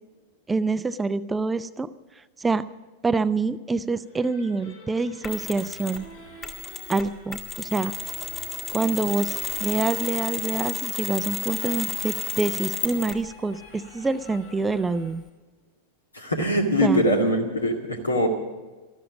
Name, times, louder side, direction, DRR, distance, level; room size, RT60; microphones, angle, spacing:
voice 1, 0.5-1.9 2.2-2.7 3.0-6.0 6.9-7.9 8.7-15.2 16.8-17.0, right 3 dB, 10° right, 14 dB, 0.5 m, -26 dB
sound 1, 4.0-15.1, left 2 dB, 60° left, 3.9 m, -48 dB
Mechanisms, 5.2-6.1 6.4-13.3, left 4 dB, 25° left, 1.9 m, -32 dB
voice 2, 16.1-18.3, equal, 80° left, 4 dB, 2.3 m, -22 dB
13.5 x 13.0 x 7.3 m, 1.2 s
figure-of-eight pair, 90°, 0 cm